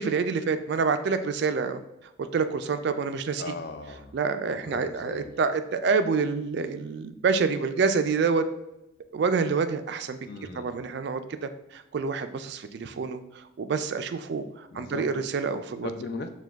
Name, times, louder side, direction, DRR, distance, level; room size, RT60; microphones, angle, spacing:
voice 1, 0.0-1.8 2.2-3.5 4.1-8.5 9.0-10.2 10.5-15.9, right 5 dB, 55° right, 9 dB, 0.3 m, -27 dB
voice 2, 3.4-4.2 4.5-5.3 10.2-10.8 14.7-15.1 15.8-16.3, left 3 dB, 50° left, 7 dB, 0.4 m, -38 dB
4.9 x 2.2 x 3.4 m, 0.87 s
head